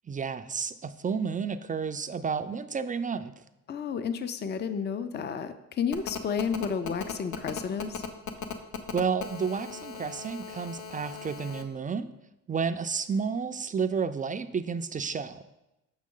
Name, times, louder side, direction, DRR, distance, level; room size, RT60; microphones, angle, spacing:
voice 1, 0.1-3.3 8.9-12.1 12.5-15.4, right 6 dB, 25° right, 10 dB, 0.4 m, -31 dB
voice 2, 3.7-8.0, left 6 dB, 35° left, 11 dB, 0.5 m, -31 dB
Telephone, 5.9-11.6, left 7 dB, 75° left, 0.8 m, -38 dB
7.3 x 6.0 x 3.8 m, 0.93 s
cardioid pair, 90°, 30 cm